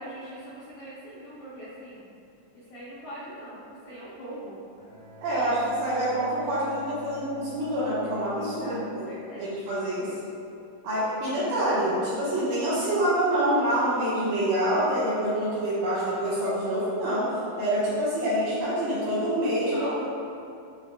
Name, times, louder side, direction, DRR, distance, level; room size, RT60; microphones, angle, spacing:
voice 1, 0.0-2.0 2.5-4.6 5.3-5.6 8.6-9.5 19.7-20.0, right 1 dB, 75° left, -9 dB, 1.8 m, -42 dB
Bowed string instrument, 4.8-9.8, left 2 dB, 70° right, 3.0 m, -46 dB
voice 2, 5.2-5.5 5.8-9.0 9.4-10.1 10.8-17.3 17.6-20.0, right 1 dB, 85° right, -12 dB, 2.9 m, -26 dB
7.9 x 2.8 x 2.3 m, 2.5 s
omnidirectional pair, 4.0 m